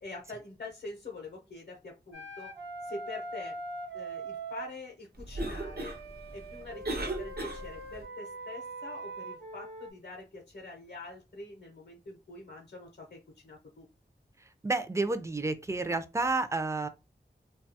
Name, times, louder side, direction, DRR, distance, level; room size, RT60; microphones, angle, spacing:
voice 1, 0.0-2.5 2.8-3.6 3.9-5.9 6.3-13.9, left 3 dB, 65° left, 0.7 m, -45 dB
Wind instrument woodwind instrument, 2.1-4.7 5.3-9.9, right 2 dB, 80° right, 1.0 m, -42 dB
Cough, 5.1-8.0, right 2 dB, 60° right, 0.7 m, -37 dB
voice 2, 14.6-16.9, right 3 dB, 15° right, 0.4 m, -30 dB
2.7 x 2.3 x 2.7 m
wide cardioid pair, 45°, 18 cm